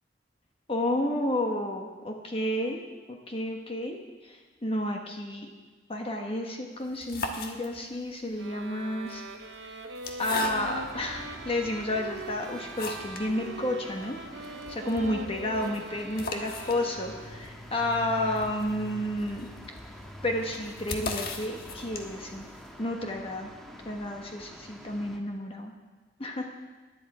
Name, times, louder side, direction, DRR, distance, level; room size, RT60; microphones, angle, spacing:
voice 1, 0.7-2.8 3.1-4.0 4.2-5.5 5.9-9.2 9.6-9.8 10.2-19.5 20.2-22.4 22.8-23.5 23.8-25.7 26.2-26.5, left 1 dB, 30° left, 2 dB, 1.2 m, -31 dB
sound 1, 6.8-8.1 8.9-11.0 11.6-11.7 12.2-13.3 13.6-13.7 14.0-14.1 14.4-22.3, left 3 dB, 55° left, 1.4 m, -39 dB
sound 2, 8.4-17.6, right 3 dB, 85° right, 0.9 m, -42 dB
sound 3, 10.4-25.2, equal, ahead, 1.4 m, -46 dB
18.0 x 11.0 x 4.9 m, 1.3 s
head